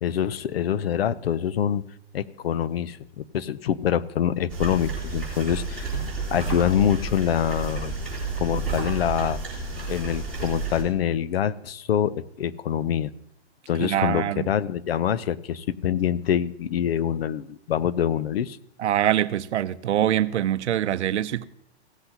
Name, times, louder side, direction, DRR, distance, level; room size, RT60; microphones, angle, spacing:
voice 1, 0.0-1.8 2.1-5.9 6.3-7.9 8.4-9.4 9.9-13.1 13.7-18.6, left 9 dB, 60° left, 0.6 m, -25 dB
sound 1, 4.5-10.8, right 4 dB, 5° left, 3.4 m, -31 dB
voice 2, 13.8-14.5 18.8-21.5, right 11 dB, 90° right, 0.6 m, -24 dB
16.5 x 7.8 x 2.8 m
hypercardioid pair, 165°, 33 cm